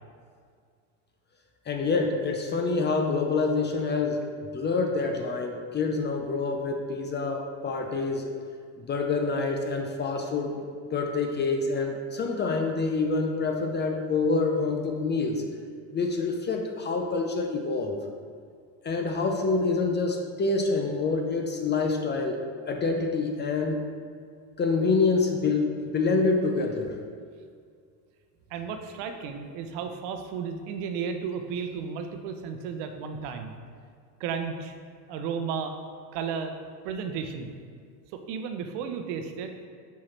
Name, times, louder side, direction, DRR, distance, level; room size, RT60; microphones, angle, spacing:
voice 1, 1.7-4.2 4.5-8.3 8.8-10.6 10.9-15.4 15.9-18.0 18.8-22.4 22.7-23.8 24.6-26.9, left 3 dB, 25° left, 3 dB, 0.5 m, -27 dB
voice 2, 28.5-33.5 34.2-34.7 35.1-35.7 36.1-36.5 36.8-37.5 38.1-39.7, right 6 dB, 60° right, 6 dB, 0.8 m, -33 dB
5.8 x 4.8 x 4.3 m, 2.1 s
supercardioid pair, 100°, 48 cm